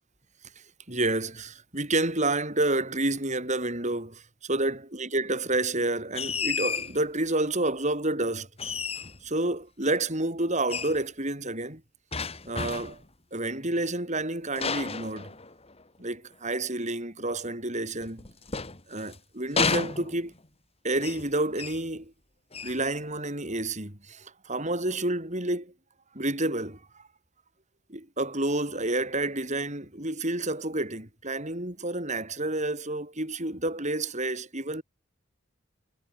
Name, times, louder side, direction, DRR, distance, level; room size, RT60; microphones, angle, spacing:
voice 1, 0.9-8.7 9.2-11.8 12.4-13.0 13.3-15.3 16.0-18.2 18.9-20.3 20.8-22.1 22.6-25.7 26.1-27.0 27.9-34.8, right 2 dB, 35° right, 6.2 m, -29 dB
sound 1, 6.1-7.0 8.6-9.3 10.7-11.0 12.1-13.1 14.6-15.8 18.0-19.2 19.6-20.5 21.0-21.3 21.6-21.9 22.5-22.8, left 5 dB, 30° left, 2.5 m, -32 dB
head